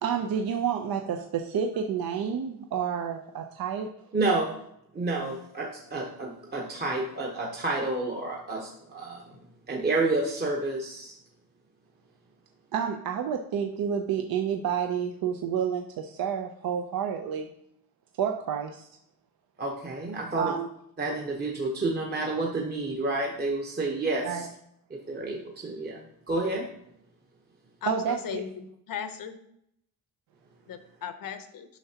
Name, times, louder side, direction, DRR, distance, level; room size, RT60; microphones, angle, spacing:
voice 1, 0.0-3.9 12.7-17.5 18.2-18.9 20.4-20.7 24.2-24.4 27.9-28.4, right 7 dB, 70° right, 0.6 m, -29 dB
voice 2, 4.1-4.5 4.9-9.3 9.7-11.2 19.6-20.5 21.0-24.5 24.9-26.7, right 2 dB, 25° right, 0.9 m, -30 dB
voice 3, 27.8-29.3 30.7-31.7, left 8 dB, 60° left, 0.8 m, -37 dB
9.1 x 5.8 x 2.8 m
cardioid pair, 130°, 37 cm